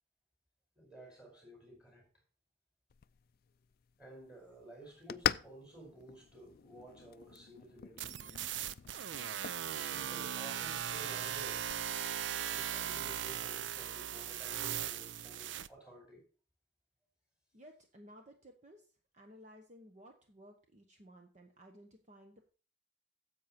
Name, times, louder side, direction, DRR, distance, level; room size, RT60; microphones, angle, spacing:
voice 1, 0.7-2.1 4.0-8.1 9.4-11.6 12.5-16.2, right 1 dB, 5° right, 5.0 m, -53 dB
sound 1, 2.9-11.9, left 9 dB, 55° left, 0.4 m, -43 dB
sound 2, 8.0-15.7, right 10 dB, 80° right, 0.5 m, -38 dB
voice 2, 17.5-22.5, equal, 40° right, 1.2 m, -57 dB
10.5 x 7.6 x 4.3 m
head